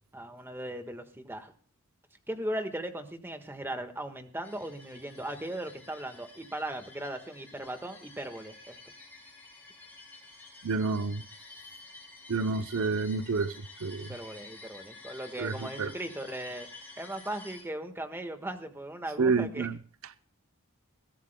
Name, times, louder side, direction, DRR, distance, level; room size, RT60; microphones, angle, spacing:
voice 1, 0.1-1.5 2.3-8.8 14.1-16.7 17.0-19.7, right 1 dB, 10° right, 1.4 m, -38 dB
sound 1, 4.4-17.6, left 3 dB, 10° left, 6.3 m, -50 dB
voice 2, 10.6-11.2 12.3-13.5 13.8-14.1 15.4-15.9 19.2-19.8, right 4 dB, 70° right, 0.7 m, -29 dB
22.0 x 15.5 x 2.2 m
head